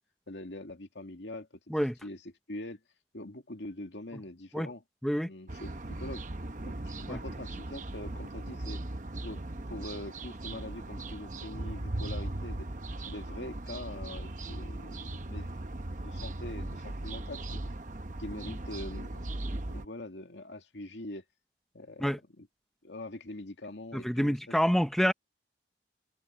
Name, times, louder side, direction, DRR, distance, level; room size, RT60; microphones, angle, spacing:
voice 1, 0.3-1.5 2.0-2.8 3.1-4.8 5.3-6.2 6.6-8.8 9.2-9.4 9.7-12.7 13.1-17.6 18.2-21.2 21.7-22.5 22.8-24.6, left 1 dB, 85° left, 2.4 m, -43 dB
sound 1, 5.5-19.9, right 2 dB, 45° right, 0.9 m, -38 dB
voice 2, 23.9-25.1, equal, ahead, 0.7 m, -27 dB
head